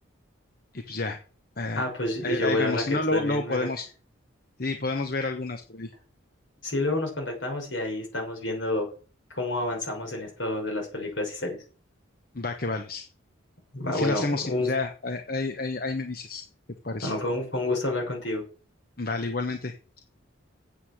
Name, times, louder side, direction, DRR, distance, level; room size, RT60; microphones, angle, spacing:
voice 1, 0.7-1.2 1.6-1.8 2.2-3.9 4.6-5.9 12.3-13.1 13.9-16.4 16.8-17.1 19.0-19.7, left 3 dB, 45° left, 6 dB, 1.0 m, -29 dB
voice 2, 1.8-3.7 6.6-8.9 9.3-11.6 13.7-14.7 17.0-18.4, left 1 dB, 70° left, 2 dB, 5.8 m, -29 dB
8.2 x 8.0 x 7.3 m, 0.38 s
head